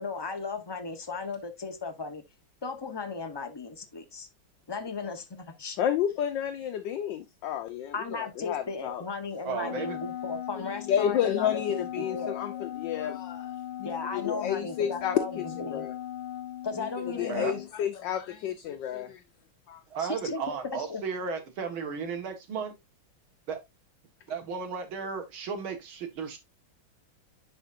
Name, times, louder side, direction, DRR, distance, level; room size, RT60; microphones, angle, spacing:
voice 1, 0.0-2.2 2.6-4.3 4.7-5.8 7.9-12.3 13.8-15.3 15.6-15.9 16.6-17.6 20.0-20.5 20.9-21.0, left 4 dB, 25° left, 0.5 m, -36 dB
voice 2, 5.8-9.0 10.6-13.5 13.8-15.9 16.8-19.2 19.7-19.8, left 10 dB, 70° left, 1.3 m, -31 dB
voice 3, 9.4-10.0 12.1-12.6 17.3-17.5 19.9-22.7 23.5-23.6 24.3-26.4, right 5 dB, 90° right, 2.4 m, -34 dB
Wind instrument woodwind instrument, 9.6-17.7, left 12 dB, 90° left, 1.5 m, -39 dB
10.5 x 5.1 x 2.5 m
omnidirectional pair, 2.2 m